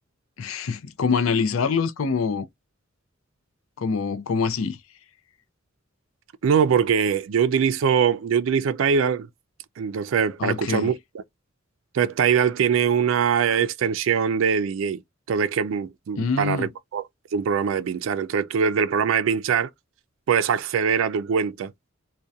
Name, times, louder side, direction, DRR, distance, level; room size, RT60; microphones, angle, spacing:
voice 1, 0.4-2.4 3.8-4.8 10.4-10.9 16.2-16.7, left 5 dB, 85° left, 0.5 m, -25 dB
voice 2, 6.4-9.3 9.8-11.2 11.9-15.0 15.3-17.0 17.3-19.7 20.3-21.7, right 7 dB, 70° right, 0.3 m, -22 dB
2.7 x 2.1 x 2.2 m
head